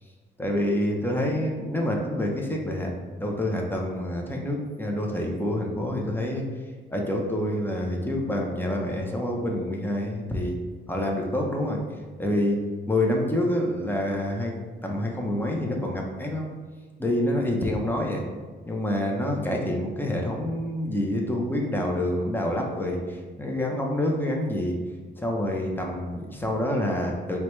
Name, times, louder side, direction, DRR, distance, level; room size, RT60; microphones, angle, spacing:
voice 1, 0.4-2.9 3.2-6.5 6.9-10.6 10.9-11.8 12.2-16.5 17.0-18.3 18.7-24.8 25.2-27.4, left 1 dB, 10° left, 0 dB, 0.5 m, -27 dB
4.5 x 2.2 x 3.0 m, 1.4 s
cardioid pair, 105°, 20 cm